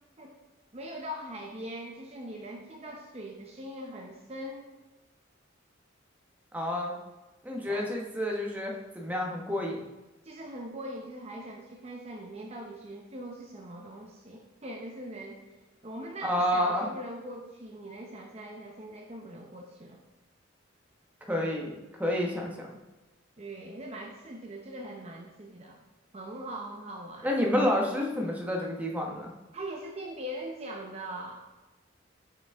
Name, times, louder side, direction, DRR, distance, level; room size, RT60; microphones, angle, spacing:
voice 1, 0.7-4.7 7.6-7.9 10.2-15.4 15.8-20.0 23.4-25.8 26.1-27.3 29.5-31.4, right 1 dB, 30° right, 0 dB, 0.7 m, -41 dB
voice 2, 6.5-6.9 7.4-9.8 16.2-16.9 21.3-22.7 27.2-29.3, left 1 dB, 10° right, -1 dB, 1.0 m, -29 dB
8.4 x 5.2 x 3.5 m, 1.1 s
head